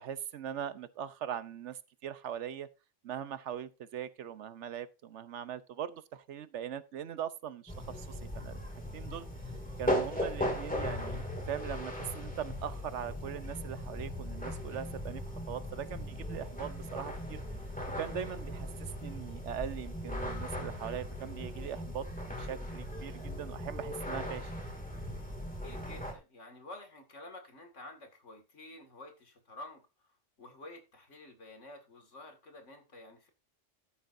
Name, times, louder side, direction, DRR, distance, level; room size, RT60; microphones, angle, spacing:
voice 1, 0.0-2.7 3.0-8.6 8.9-15.2 15.5-17.6 18.0-22.1 22.4-24.5, right 9 dB, 70° right, 1.0 m, -41 dB
sound 1, 7.7-26.1, equal, 5° left, 2.2 m, -38 dB
voice 2, 25.6-29.8 30.4-33.3, left 2 dB, 75° left, 2.4 m, -50 dB
13.0 x 9.9 x 2.6 m
omnidirectional pair, 1.3 m